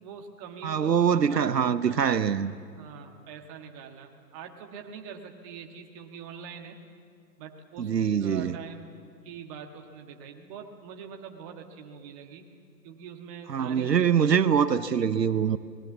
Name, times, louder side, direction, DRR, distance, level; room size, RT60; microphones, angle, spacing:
voice 1, 0.0-2.2 2.8-6.8 7.4-8.9 9.2-12.4 12.8-14.4, right 7 dB, 20° right, 1.5 m, -44 dB
voice 2, 0.6-2.5 7.8-8.6 13.5-15.6, right 7 dB, 75° right, 0.9 m, -24 dB
28.0 x 20.5 x 7.2 m
figure-of-eight pair, 140°, 50 cm